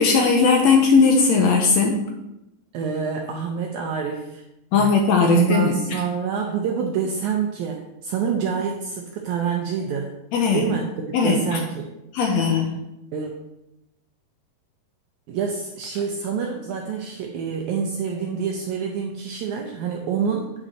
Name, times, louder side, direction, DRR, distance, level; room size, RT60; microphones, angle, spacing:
voice 1, 0.0-2.0 4.7-5.7 10.3-10.6 11.1-11.4 12.1-12.7, left 5 dB, 75° left, 2 dB, 1.6 m, -18 dB
voice 2, 2.7-4.4 4.7-4.9 5.2-10.1 10.5-10.9 11.2-11.9 13.1-13.3 15.3-20.5, right 6 dB, 75° right, 2 dB, 1.8 m, -26 dB
8.7 x 5.3 x 4.3 m, 0.90 s
omnidirectional pair, 4.1 m